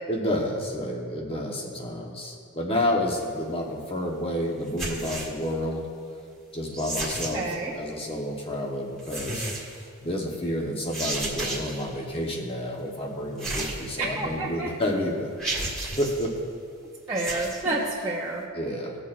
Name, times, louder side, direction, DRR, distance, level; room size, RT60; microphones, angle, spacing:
voice 1, 0.1-5.9 6.5-9.5 9.7-15.3 16.0-16.4 18.5-19.0, left 1 dB, 25° left, 0 dB, 1.1 m, -30 dB
sound 1, 4.7-5.5 6.7-7.6 9.0-9.8 10.9-11.9 13.4-14.3 14.8-14.9 15.4-16.3 17.1-17.6, right 2 dB, ahead, 1.7 m, -33 dB
voice 2, 7.3-7.7 14.0-14.7 17.1-18.4, right 2 dB, 15° right, -8 dB, 0.9 m, -29 dB
17.5 x 6.6 x 2.6 m, 2.4 s
head